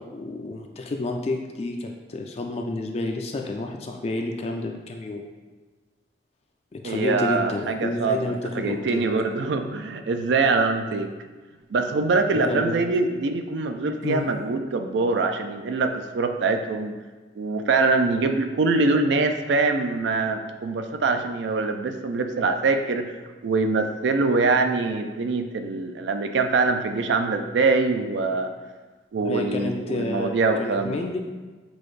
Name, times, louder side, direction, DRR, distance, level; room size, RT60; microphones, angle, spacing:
voice 1, 0.0-5.2 6.7-9.0 12.3-12.8 14.0-14.2 29.2-31.2, left 2 dB, 35° left, 3 dB, 0.3 m, -30 dB
voice 2, 6.8-11.1 11.7-16.9 17.4-23.2 23.4-28.5 29.1-31.0, right 3 dB, 75° right, 6 dB, 0.4 m, -24 dB
6.1 x 2.5 x 3.2 m, 1.3 s
head